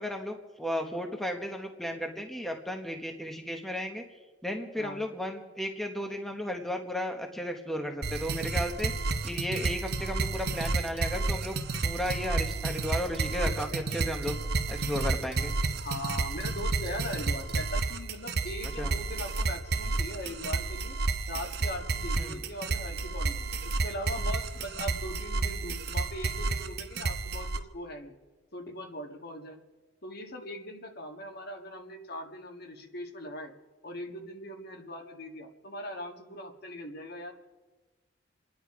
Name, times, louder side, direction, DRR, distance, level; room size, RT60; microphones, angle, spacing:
voice 1, 0.0-4.0 4.4-8.9 9.2-11.6 11.8-14.4 14.7-15.5 18.8-18.9 22.2-22.4, equal, ahead, 3 dB, 1.1 m, -34 dB
sound 1, 8.0-27.6, right 3 dB, 55° right, 0.9 m, -31 dB
voice 2, 15.7-21.0 21.3-28.1 28.5-29.6 30.0-33.5 33.8-37.3, left 1 dB, 55° left, 4 dB, 1.7 m, -40 dB
28.5 x 10.5 x 4.8 m, 1.3 s
head